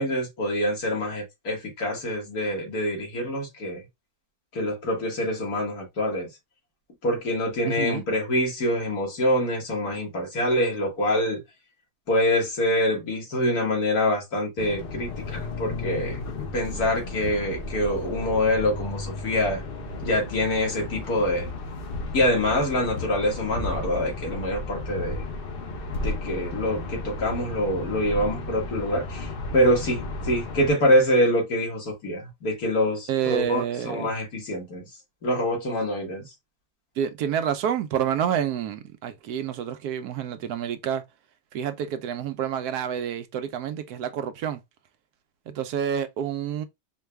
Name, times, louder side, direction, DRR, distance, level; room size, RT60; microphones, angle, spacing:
voice 1, 0.0-3.8 4.5-6.3 7.0-11.4 12.1-16.2 16.5-19.6 20.0-21.5 22.1-25.2 26.0-34.9 35.2-36.3, left 1 dB, 70° left, 2.1 m, -25 dB
voice 2, 7.6-8.1 16.7-16.8 33.1-34.1 37.0-41.0 41.5-44.6 45.5-46.7, right 9 dB, 75° right, 1.1 m, -28 dB
sound 1, 14.6-30.7, left 2 dB, 45° left, 0.8 m, -34 dB
4.6 x 2.2 x 3.3 m
omnidirectional pair, 1.7 m